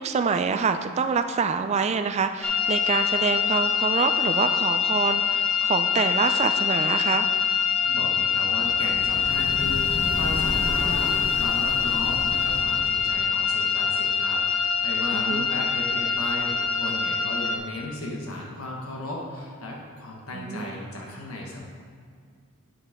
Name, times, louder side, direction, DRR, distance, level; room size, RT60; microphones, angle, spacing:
voice 1, 0.0-7.3 15.1-15.5 20.3-20.7, right 5 dB, 30° right, 9 dB, 0.3 m, -26 dB
sound 1, 2.4-17.6, left 7 dB, 5° left, 0.9 m, -24 dB
voice 2, 7.8-21.6, left 1 dB, 80° left, -1 dB, 1.2 m, -35 dB
sound 2, 8.5-13.3, left 1 dB, 60° left, 1.0 m, -34 dB
8.9 x 6.9 x 3.6 m, 2.1 s
head